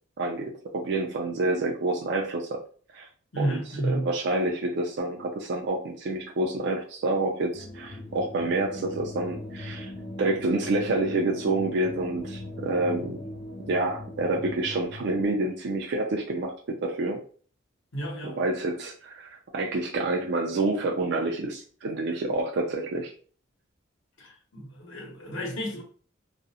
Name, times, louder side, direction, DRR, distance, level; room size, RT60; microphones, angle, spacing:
voice 1, 0.2-2.6 2.9-3.1 3.4-9.9 10.2-13.2 13.7-17.2 18.2-23.1, right 2 dB, 55° right, 0.4 m, -28 dB
voice 2, 3.3-4.1 17.9-18.3 24.2-25.8, right 1 dB, 70° left, 0.9 m, -31 dB
sound 1, 7.5-15.2, left 1 dB, 25° left, 0.3 m, -40 dB
2.4 x 2.0 x 2.7 m
head